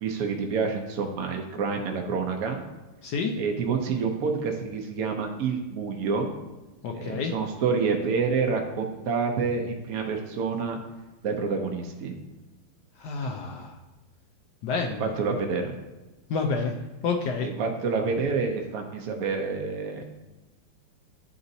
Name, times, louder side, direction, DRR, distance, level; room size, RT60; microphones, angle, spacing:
voice 1, 0.0-2.6 3.4-6.3 6.9-10.8 11.2-12.1 15.0-15.7 17.4-20.0, right 5 dB, 85° right, 3 dB, 0.8 m, -28 dB
voice 2, 3.0-3.4 6.8-7.3 13.0-13.8 14.6-15.1 16.3-16.7 17.0-17.5, left 4 dB, 90° left, 2 dB, 0.9 m, -29 dB
9.8 x 4.0 x 2.6 m, 1.1 s
omnidirectional pair, 2.4 m